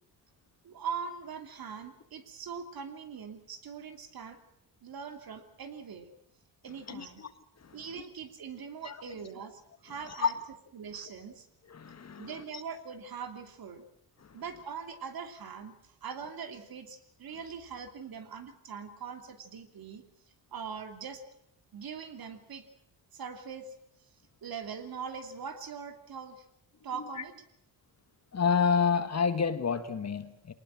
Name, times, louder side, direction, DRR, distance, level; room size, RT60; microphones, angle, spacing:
voice 1, 0.6-4.4 4.8-6.1 6.6-7.2 7.7-10.3 10.7-11.5 12.2-13.8 14.3-20.0 20.5-21.2 21.7-22.7 23.1-23.7 24.4-26.4 26.8-27.4, right 6 dB, 55° right, 7 dB, 3.0 m, -42 dB
voice 2, 6.9-7.3 7.6-7.9 8.8-9.0 10.1-10.3 11.7-12.4 14.2-14.4 27.2-27.3 28.3-30.5, left 6 dB, 40° left, 10 dB, 1.6 m, -29 dB
23.5 x 19.5 x 7.6 m, 0.73 s
cardioid pair, 135°, 42 cm